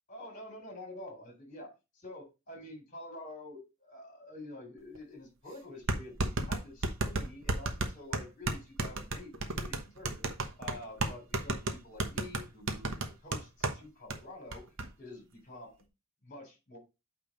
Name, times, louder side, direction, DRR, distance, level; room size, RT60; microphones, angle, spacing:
voice 1, 0.1-10.3 10.6-14.7 15.0-15.9 16.2-16.8, left 2 dB, 40° left, 3.7 m, -48 dB
sound 1, 5.0-5.1 5.9-13.8 14.1-14.2 14.5-14.9, right 2 dB, 65° right, 1.1 m, -33 dB
8.6 x 3.4 x 5.4 m
head